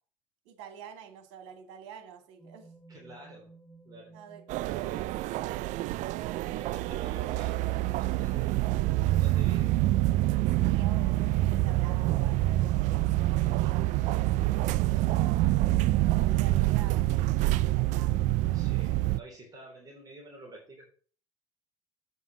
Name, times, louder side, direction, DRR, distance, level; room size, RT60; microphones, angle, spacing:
voice 1, 0.5-2.7 4.1-4.4 4.7-5.8 10.5-15.5 16.0-17.1 17.7-18.1, right 8 dB, 80° right, 2.3 m, -48 dB
sound 1, 2.4-16.2, right 3 dB, 15° left, 4.4 m, -56 dB
voice 2, 2.9-3.5 3.8-4.2 6.2-8.6 9.1-9.8 10.7-10.9 18.5-20.9, right 2 dB, 25° right, 3.7 m, -49 dB
sound 2, 4.5-19.2, right 16 dB, 55° right, 0.4 m, -26 dB
8.3 x 5.5 x 6.2 m
supercardioid pair, 110°, 15 cm